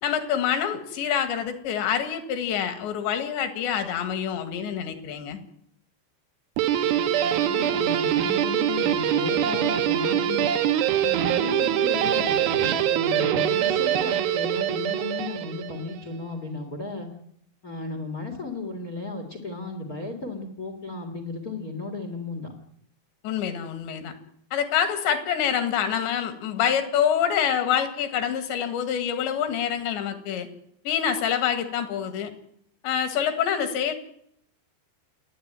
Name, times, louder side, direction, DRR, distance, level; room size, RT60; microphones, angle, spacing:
voice 1, 0.0-5.4 23.2-24.1 24.5-30.5 30.9-32.3 32.8-33.9, left 8 dB, 75° left, 8 dB, 3.9 m, -26 dB
Guitar, 6.6-15.9, right 10 dB, 70° right, 2.5 m, -24 dB
voice 2, 7.4-10.5 11.0-17.1 17.6-22.5, left 3 dB, 45° left, 5 dB, 1.2 m, -34 dB
29.0 x 10.0 x 9.0 m, 0.72 s
omnidirectional pair, 5.2 m